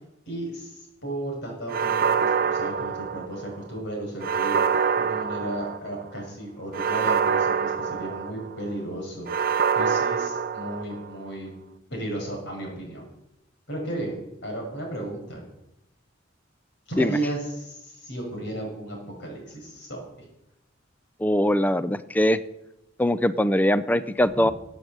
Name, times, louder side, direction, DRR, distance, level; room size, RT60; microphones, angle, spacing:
voice 1, 0.2-4.6 4.9-9.3 9.7-11.5 11.9-13.1 13.7-15.4 16.9-20.0, right 1 dB, 60° left, 0 dB, 6.2 m, -34 dB
sound 1, 1.7-3.6 4.2-6.0 6.7-8.6 9.3-11.1, right 6 dB, 50° right, 0.7 m, -25 dB
voice 2, 21.2-22.4 23.0-24.5, left 1 dB, 10° left, 14 dB, 0.4 m, -22 dB
13.5 x 8.2 x 8.0 m, 0.88 s
head